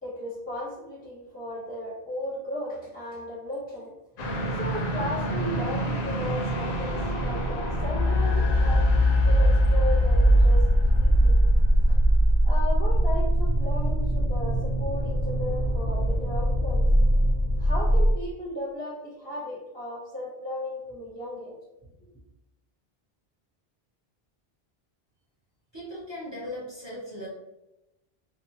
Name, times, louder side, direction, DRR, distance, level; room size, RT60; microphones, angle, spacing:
voice 1, 0.0-3.9 4.6-11.4 11.9-12.0 12.4-16.8 17.6-21.5, left 1 dB, 10° left, -5 dB, 0.6 m, -35 dB
sound 1, 4.2-18.1, equal, 65° left, 0.7 m, -22 dB
voice 2, 25.7-27.3, left 1 dB, 30° right, -6 dB, 0.6 m, -38 dB
2.7 x 2.1 x 2.8 m, 0.94 s
omnidirectional pair, 1.1 m